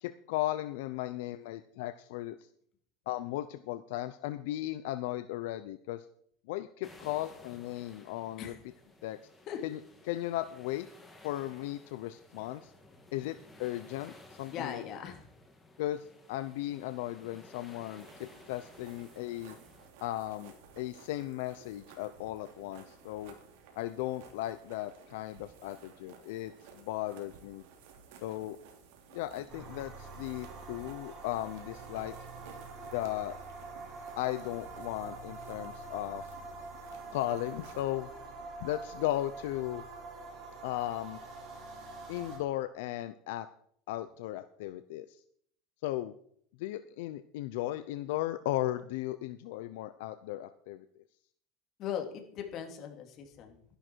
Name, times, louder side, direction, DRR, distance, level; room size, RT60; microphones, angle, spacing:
voice 1, 0.0-2.4 3.1-6.1 6.5-8.5 9.0-9.2 9.6-9.8 10.1-10.9 11.2-12.7 13.1-14.1 14.4-14.8 15.8-19.6 20.0-23.3 23.8-27.6 28.2-28.6 29.1-32.1 32.9-33.4 34.2-36.3 37.1-38.1 38.6-39.8 40.6-41.2 42.1-43.5 43.9-45.2 45.8-46.1 46.6-51.0, left 15 dB, 75° left, 12 dB, 0.6 m, -36 dB
sound 1, 6.8-19.9, left 2 dB, 10° left, 2.5 m, -56 dB
voice 2, 14.5-15.3 51.8-53.6, left 8 dB, 45° left, 4 dB, 2.5 m, -39 dB
sound 2, 18.0-37.8, right 6 dB, 70° right, 3.1 m, -56 dB
sound 3, 29.5-42.4, right 3 dB, 35° right, 4.5 m, -45 dB
12.5 x 11.5 x 4.6 m, 0.65 s
supercardioid pair, 140°, 0 cm